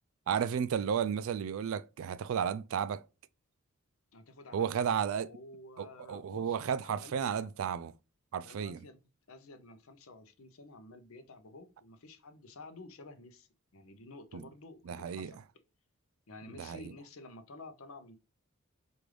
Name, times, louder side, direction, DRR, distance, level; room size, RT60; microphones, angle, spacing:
voice 1, 0.3-3.0 4.5-5.3 5.8-7.9 8.3-8.8 14.3-14.4 14.9-15.3 16.6-16.9, right 7 dB, 65° right, 0.3 m, -33 dB
voice 2, 4.1-7.5 8.4-9.0 9.3-13.5 13.7-15.4 16.3-18.2, left 2 dB, 65° left, 0.6 m, -51 dB
4.7 x 2.6 x 3.1 m
head